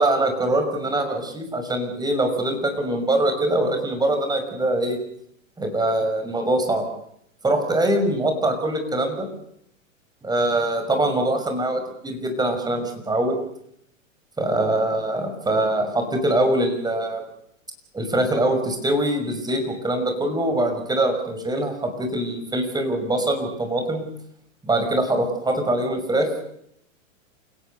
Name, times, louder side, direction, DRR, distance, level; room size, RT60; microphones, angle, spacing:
voice 1, 0.0-5.0 5.6-6.8 7.4-9.3 10.2-13.4 14.4-17.2 17.9-24.1 24.6-26.3, right 1 dB, 10° right, 6 dB, 5.7 m, -23 dB
28.5 x 17.5 x 6.9 m, 0.72 s
hypercardioid pair, 110°, 40 cm